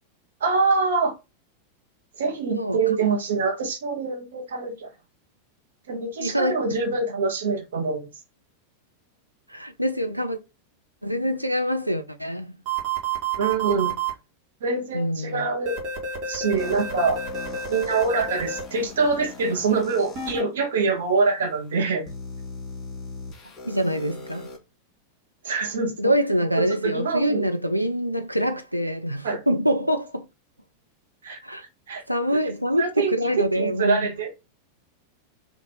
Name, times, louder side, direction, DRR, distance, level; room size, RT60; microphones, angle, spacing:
voice 1, 0.4-1.1 2.2-4.9 5.9-8.1 13.4-14.0 14.6-15.8 16.3-17.2 17.7-22.1 25.4-26.1 26.6-27.5 29.2-29.4 31.2-31.4 31.9-32.0 32.4-32.5 32.8-34.3, right 4 dB, 60° right, 1.2 m, -25 dB
voice 2, 6.2-6.6 9.5-10.4 11.0-12.5 14.9-15.5 23.6-24.5 26.0-30.3 31.4-31.6 32.1-34.1, equal, 90° right, 0.6 m, -25 dB
sound 1, 12.7-14.1 15.7-18.6 20.2-20.4, right 5 dB, 40° right, 1.8 m, -29 dB
sound 2, 16.6-20.3 21.1-21.2 22.1-24.6, left 4 dB, 25° left, 2.1 m, -40 dB
4.2 x 2.8 x 4.2 m
figure-of-eight pair, 90°, 0 cm